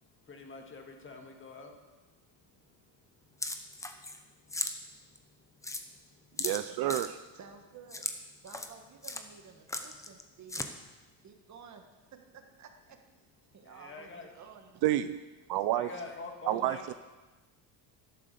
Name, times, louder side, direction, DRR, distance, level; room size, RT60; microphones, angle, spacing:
voice 1, 0.0-1.8 2.6-2.8 4.0-4.6 5.5-5.6 6.0-6.1 11.1-11.2 13.6-14.3 15.7-16.9, left 3 dB, 25° left, 3 dB, 1.9 m, -46 dB
sound 1, 3.4-4.2 4.5-4.7 5.2-5.3 5.6-5.8 6.4-7.1 7.9-8.1 8.5-8.7 9.0-9.2 9.7-10.2 10.5-10.7, left 2 dB, 5° left, 0.8 m, -36 dB
voice 2, 6.4-7.2 14.8-15.2 15.5-15.9 16.5-16.9, right 14 dB, 60° right, 12 dB, 0.6 m, -29 dB
voice 3, 7.3-8.1 8.4-10.7 11.2-13.0 13.5-14.8, right 6 dB, 35° right, 5 dB, 1.7 m, -53 dB
12.5 x 12.0 x 6.7 m, 1.2 s
cardioid pair, 155°, 45 cm